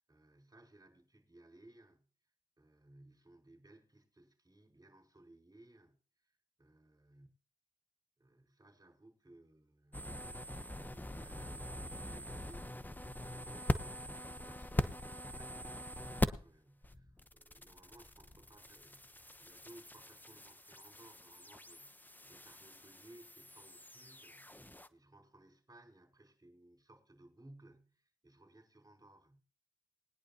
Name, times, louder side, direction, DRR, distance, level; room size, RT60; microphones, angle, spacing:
voice 1, 0.0-2.0 2.6-7.3 8.2-10.4 10.8-13.0 13.3-29.4, right 1 dB, 25° right, 5.1 m, -61 dB
sound 1, 9.9-16.6 16.8-24.9, left 1 dB, 15° left, 0.9 m, -42 dB
20.5 x 10.5 x 2.9 m
cardioid pair, 40°, 14 cm